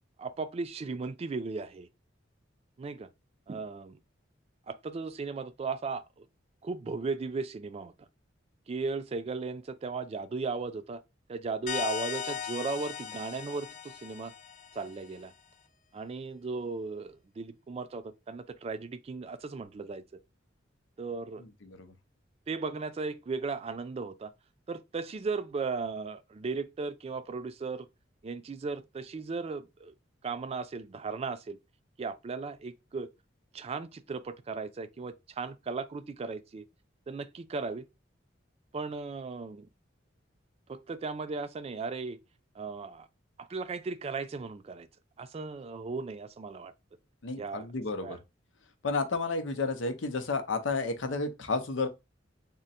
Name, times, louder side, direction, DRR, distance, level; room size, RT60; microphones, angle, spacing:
voice 1, 0.2-1.9 2.8-3.1 3.5-4.0 4.7-6.3 6.6-8.1 8.7-11.0 11.3-14.3 14.7-15.3 15.9-20.0 21.0-21.4 22.5-24.3 24.7-27.9 28.2-29.9 30.2-31.6 32.0-33.1 33.5-36.6 37.1-37.9 38.7-39.7 40.7-42.2 42.6-43.1 43.4-44.9 45.2-46.7 47.4-47.7 48.0-48.2, right 4 dB, 35° right, 0.3 m, -36 dB
sound 1, 11.7-15.1, left 8 dB, 45° left, 0.6 m, -38 dB
voice 2, 21.6-21.9 47.2-48.2 48.8-51.9, left 3 dB, 80° left, 0.7 m, -31 dB
3.7 x 2.1 x 4.1 m
head